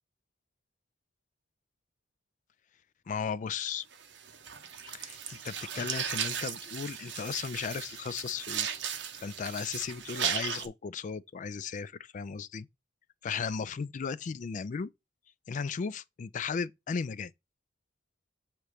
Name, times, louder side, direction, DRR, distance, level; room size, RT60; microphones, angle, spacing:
voice 1, 3.1-3.8 4.9-8.7 9.2-12.7 13.2-14.9 15.5-17.3, left 6 dB, 40° left, 0.3 m, -36 dB
sound 1, 3.9-10.7, right 8 dB, 65° right, 0.8 m, -36 dB
6.6 x 3.0 x 4.9 m
head